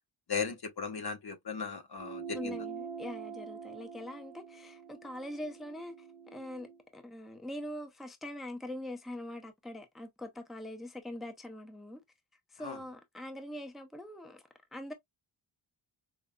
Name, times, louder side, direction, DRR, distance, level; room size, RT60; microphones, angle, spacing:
voice 1, 0.3-2.6 12.6-12.8, left 5 dB, 50° left, 0.9 m, -37 dB
sound 1, 2.0-6.8, right 6 dB, 80° right, 1.0 m, -44 dB
voice 2, 2.3-12.0 12.5-14.4 14.7-14.9, left 1 dB, ahead, 0.6 m, -43 dB
5.0 x 2.1 x 2.2 m
wide cardioid pair, 70°, 49 cm